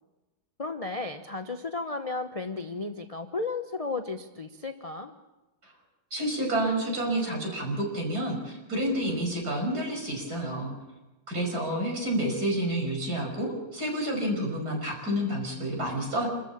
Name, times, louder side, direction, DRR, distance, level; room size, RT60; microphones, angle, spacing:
voice 1, 0.6-5.1, left 3 dB, 30° left, 6 dB, 0.6 m, -34 dB
voice 2, 6.1-10.7 11.3-16.3, right 1 dB, 50° right, 1 dB, 6.2 m, -29 dB
28.0 x 14.0 x 7.2 m, 1.1 s
omnidirectional pair, 2.1 m